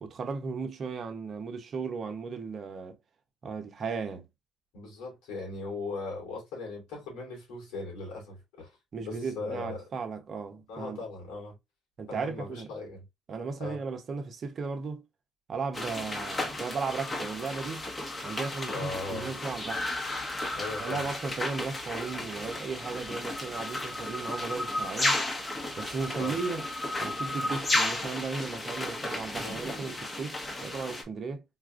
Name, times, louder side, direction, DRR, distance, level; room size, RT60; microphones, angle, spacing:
voice 1, 0.0-3.0 3.4-4.3 8.9-11.0 12.0-12.7 13.3-15.0 15.5-17.9 18.2-19.9 20.8-25.2 25.8-26.6 27.0-31.4, right 4 dB, 50° right, 0.8 m, -36 dB
voice 2, 4.7-9.8 10.7-11.5 12.1-13.0 13.6-13.8 18.7-19.3 20.5-21.0 26.2-26.4 29.4-29.5, left 3 dB, 85° left, 2.2 m, -38 dB
sound 1, 15.7-31.0, left 2 dB, 25° left, 1.0 m, -33 dB
3.9 x 2.4 x 2.4 m
supercardioid pair, 80°, 0 cm